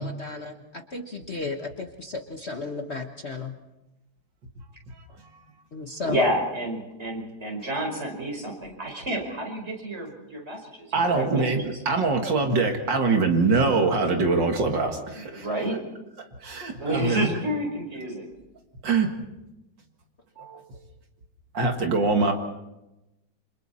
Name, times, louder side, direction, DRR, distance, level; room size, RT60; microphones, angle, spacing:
voice 1, 0.0-3.6 5.7-6.3 20.4-20.5, left 3 dB, 40° left, 4 dB, 1.3 m, -33 dB
voice 2, 6.0-11.4 11.7-11.8 15.1-15.8 16.8-18.3, right 1 dB, 35° right, 1 dB, 5.1 m, -30 dB
voice 3, 10.9-15.5 16.4-17.3 18.8-19.1 20.4-20.7 21.5-22.3, right 3 dB, 75° right, 3 dB, 2.6 m, -23 dB
29.0 x 26.0 x 4.3 m, 0.96 s
omnidirectional pair, 2.0 m